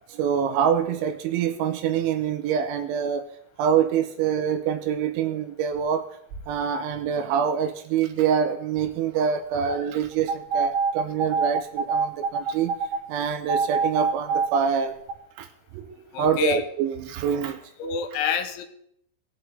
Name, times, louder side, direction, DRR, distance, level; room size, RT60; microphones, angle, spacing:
voice 1, 0.2-3.2 3.6-6.0 6.5-12.7 13.1-14.9 15.8-15.9 16.2-17.6, right 7 dB, 85° right, 7 dB, 2.9 m, -25 dB
sound 1, 10.3-13.0 13.5-14.6 15.1-15.2, right 5 dB, 60° right, 2.3 m, -24 dB
voice 2, 16.1-16.6 17.8-18.6, left 8 dB, 80° left, 7 dB, 3.3 m, -27 dB
18.5 x 7.6 x 3.3 m, 0.71 s
omnidirectional pair, 5.6 m